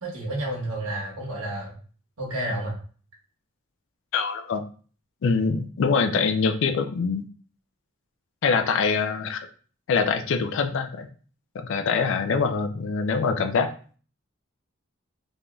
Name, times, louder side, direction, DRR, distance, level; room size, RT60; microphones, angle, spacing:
voice 1, 0.0-1.7 2.2-2.8, right 1 dB, 75° right, -2 dB, 1.0 m, -30 dB
voice 2, 4.1-4.6 5.2-7.2 8.4-9.5 9.9-11.1 11.6-13.7, left 5 dB, 60° left, 8 dB, 0.3 m, -24 dB
3.4 x 2.5 x 2.2 m, 0.41 s
head